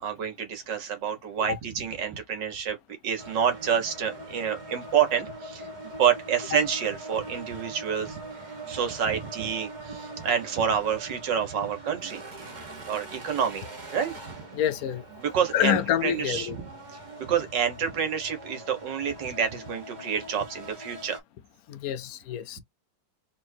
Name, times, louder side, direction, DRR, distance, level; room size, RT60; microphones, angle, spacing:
voice 1, 0.0-2.8 3.0-8.2 8.7-12.2 12.9-14.4 15.2-16.6 16.9-21.2, right 8 dB, 70° right, 1.9 m, -28 dB
sound 1, 3.2-21.2, right 2 dB, 30° right, 1.1 m, -42 dB
voice 2, 14.5-15.0 15.5-16.5 21.7-22.6, left 11 dB, 70° left, 0.9 m, -27 dB
4.4 x 3.6 x 2.7 m
omnidirectional pair, 2.0 m